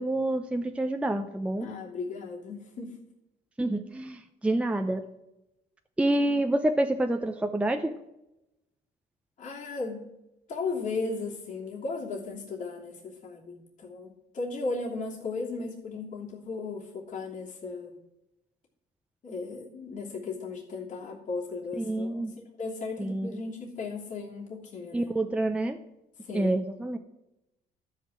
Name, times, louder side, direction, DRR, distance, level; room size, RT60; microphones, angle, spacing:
voice 1, 0.0-1.7 3.6-5.0 6.0-7.9 21.8-22.3 23.0-23.3 24.9-25.8 26.3-27.0, right 1 dB, 5° right, 6 dB, 0.6 m, -27 dB
voice 2, 1.6-2.9 6.2-6.5 9.4-10.1 10.5-18.0 19.2-25.1 26.2-26.6, left 3 dB, 50° left, -3 dB, 2.9 m, -36 dB
12.5 x 5.7 x 7.6 m, 0.90 s
cardioid pair, 110°, 17 cm